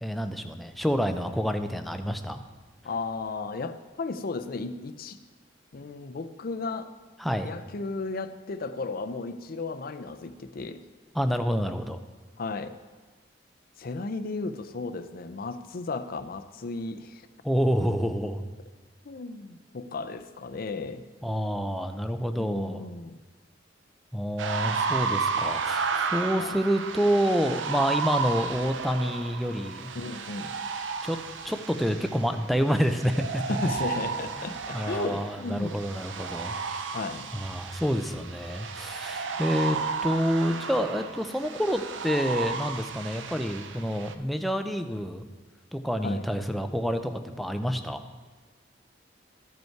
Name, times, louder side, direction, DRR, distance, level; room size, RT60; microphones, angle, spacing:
voice 1, 0.0-2.4 7.2-7.5 11.1-12.0 17.4-18.4 21.2-22.9 24.1-29.9 31.0-31.2 31.4-33.4 34.4-37.0 37.3-45.2 45.7-48.0, equal, ahead, 6 dB, 0.5 m, -28 dB
voice 2, 2.8-5.2 5.7-6.9 7.4-10.8 12.4-12.8 13.8-17.2 19.0-21.0 22.4-23.2 26.4-26.6 29.9-30.5 33.5-35.7 36.9-37.3 46.0-46.3, left 3 dB, 55° left, 9 dB, 0.5 m, -34 dB
sound 1, 24.4-44.1, right 5 dB, 85° right, 0.6 m, -33 dB
13.5 x 5.4 x 4.6 m, 1.3 s
head